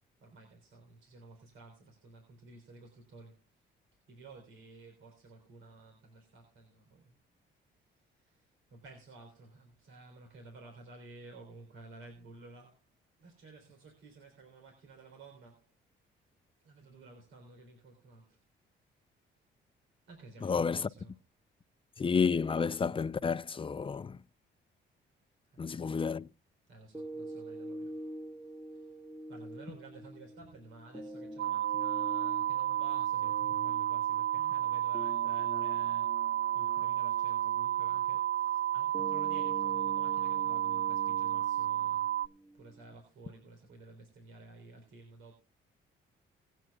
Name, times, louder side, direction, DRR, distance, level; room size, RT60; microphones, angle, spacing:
voice 1, 0.2-3.7 4.1-7.2 7.8-12.8 13.2-15.7 16.6-18.4 20.0-21.2 25.4-25.9 26.6-29.0 29.3-42.1 42.5-45.3, right 3 dB, 85° right, 3.9 m, -54 dB
voice 2, 20.4-20.9 22.0-24.2 25.6-26.3, left 5 dB, 25° left, 0.5 m, -30 dB
sound 1, 26.9-42.9, right 1 dB, 5° right, 1.4 m, -46 dB
sound 2, 31.4-42.3, right 12 dB, 65° right, 0.6 m, -31 dB
22.5 x 9.1 x 2.4 m
cardioid pair, 90°, 20 cm